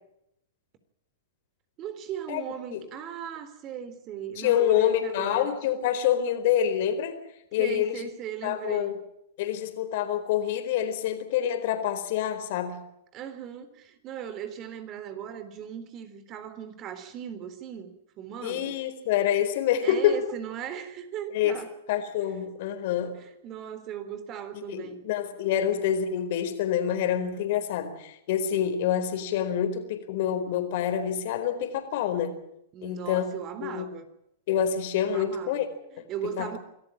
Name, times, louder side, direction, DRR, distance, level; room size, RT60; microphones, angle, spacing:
voice 1, 1.8-5.5 7.6-8.9 13.1-18.8 19.8-21.7 23.0-25.0 25.5-25.7 32.7-34.1 35.0-36.6, right 9 dB, 35° right, 3.6 m, -38 dB
voice 2, 4.4-7.2 7.5-8.1 8.4-9.0 9.4-12.8 18.4-20.3 21.3-23.2 24.5-32.4 32.8-33.3 33.6-33.9 34.5-35.6 36.4-36.6, left 10 dB, 60° left, 4.4 m, -27 dB
25.5 x 14.5 x 8.8 m
hypercardioid pair, 130°, 0 cm